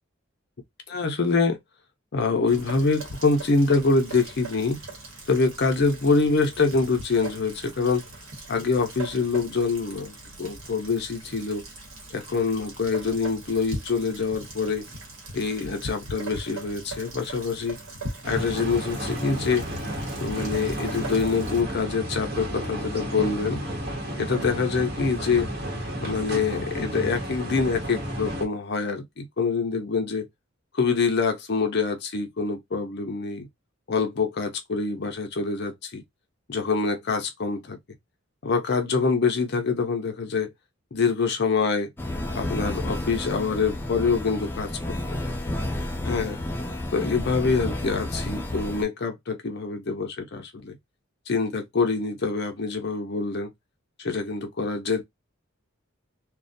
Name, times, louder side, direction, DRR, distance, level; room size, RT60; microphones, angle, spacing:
voice 1, 0.9-1.6 2.1-4.8 5.3-8.0 8.5-11.6 12.1-14.9 15.3-17.8 18.2-19.6 20.2-23.6 24.2-25.5 26.0-30.3 30.8-33.5 33.9-36.0 36.5-37.8 38.4-40.5 40.9-41.9 42.3-45.4 46.0-46.4 46.9-50.8 51.3-53.5 54.0-55.0, left 4 dB, 55° left, 0.6 m, -25 dB
Rain, 2.5-21.6, right 2 dB, 75° right, 1.0 m, -40 dB
sound 1, 18.2-28.5, right 1 dB, 50° right, 0.9 m, -32 dB
sound 2, 42.0-48.8, left 1 dB, 10° left, 0.3 m, -31 dB
2.3 x 2.1 x 2.5 m
head